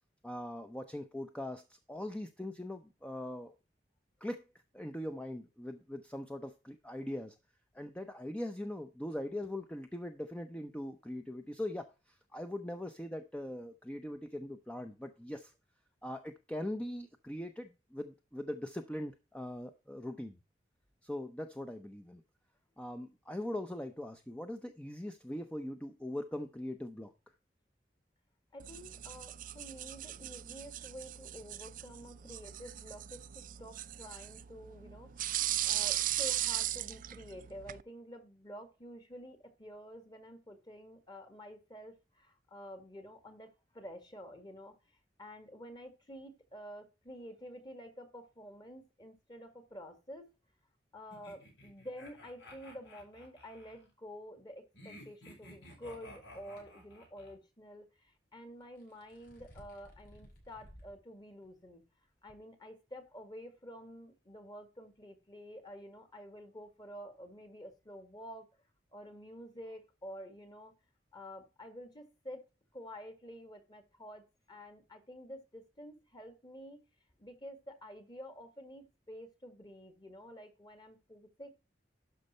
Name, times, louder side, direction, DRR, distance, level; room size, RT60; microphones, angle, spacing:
voice 1, 0.2-3.5 4.2-4.4 4.7-7.4 7.7-15.5 16.0-20.4 21.0-22.2 22.8-27.1, left 1 dB, 5° left, 0.7 m, -41 dB
voice 2, 28.5-44.7 45.2-50.3 50.9-61.8 62.2-68.5 68.9-70.7 71.1-72.4 72.7-76.8 77.2-81.5, equal, 25° left, 1.9 m, -49 dB
sound 1, 28.6-37.8, right 13 dB, 50° right, 0.4 m, -38 dB
sound 2, 51.1-53.8 54.7-57.3, left 1 dB, 80° left, 5.3 m, -54 dB
sound 3, 56.6-56.7 58.6-61.0 61.4-61.5 62.3-62.4, equal, 55° left, 5.8 m, -57 dB
12.0 x 5.3 x 4.2 m
head